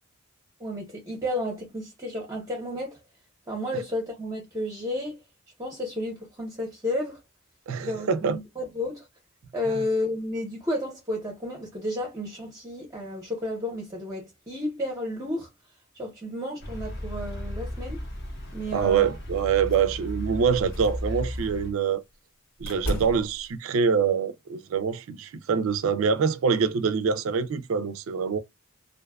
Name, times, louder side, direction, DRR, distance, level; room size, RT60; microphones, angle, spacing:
voice 1, 0.6-3.0 3.5-5.2 5.6-7.2 7.8-9.1 9.5-15.5 15.9-18.0 18.5-19.1, left 1 dB, 15° right, 0.7 m, -32 dB
voice 2, 7.7-8.4 18.7-22.0 22.6-28.4, right 6 dB, 75° right, 0.4 m, -25 dB
sound 1, 16.6-21.7, equal, 50° left, 0.8 m, -35 dB
sound 2, 19.7-20.1 20.5-21.6 22.6-23.6, equal, 70° left, 1.5 m, -34 dB
2.5 x 2.2 x 2.2 m
head